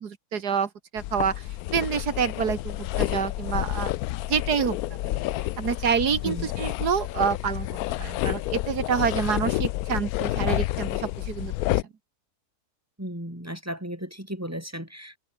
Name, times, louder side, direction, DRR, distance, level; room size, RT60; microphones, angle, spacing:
voice 1, 0.0-1.4 1.7-3.9 4.3-5.2 5.6-7.7 8.0-11.5, right 7 dB, 80° right, 2.2 m, -27 dB
sound 1, 1.0-11.8, left 15 dB, 70° left, 1.0 m, -29 dB
voice 2, 13.0-15.2, equal, 10° right, 3.4 m, -35 dB
omnidirectional pair, 1.7 m